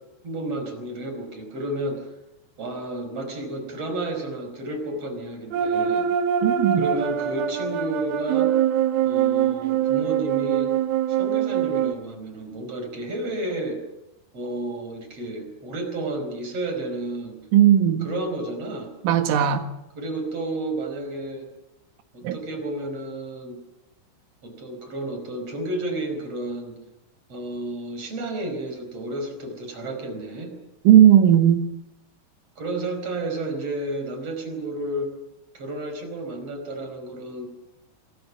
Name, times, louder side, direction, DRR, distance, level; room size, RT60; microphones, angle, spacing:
voice 1, 0.2-2.1 2.6-6.1 6.8-8.5 9.0-10.7 11.1-13.8 14.3-17.4 18.0-18.9 20.0-21.5 22.1-23.6 24.4-26.8 27.3-30.5 32.6-35.1 35.5-37.5, right 1 dB, 30° right, 5.7 m, -31 dB
sound 1, 5.5-11.9, right 9 dB, 65° right, 2.6 m, -23 dB
voice 2, 6.4-6.8 17.5-18.1 19.0-19.7 22.2-22.4 30.9-31.6, right 10 dB, 85° right, 4.3 m, -16 dB
27.5 x 26.5 x 6.1 m
omnidirectional pair, 5.6 m